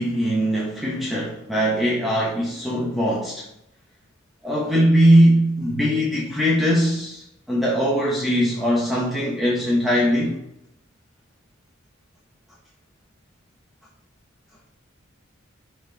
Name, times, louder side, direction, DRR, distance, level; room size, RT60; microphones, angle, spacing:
voice 1, 0.0-3.4 4.4-10.4, equal, ahead, -5 dB, 1.1 m, -20 dB
6.2 x 4.5 x 4.0 m, 0.78 s
head